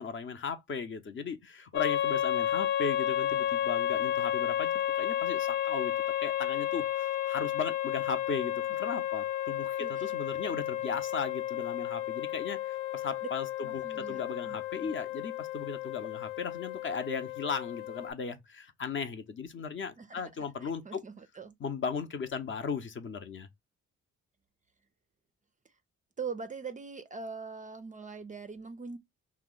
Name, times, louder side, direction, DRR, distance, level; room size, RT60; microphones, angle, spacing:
voice 1, 0.0-5.9 6.2-21.0 21.6-23.5, left 5 dB, 40° left, 0.6 m, -37 dB
sound 1, 1.7-18.1, left 12 dB, 85° left, 0.5 m, -32 dB
voice 2, 9.8-10.1 13.6-14.9 20.0-21.5 26.2-29.0, right 5 dB, 25° right, 0.4 m, -42 dB
2.7 x 2.0 x 3.7 m
cardioid pair, 90°, 30 cm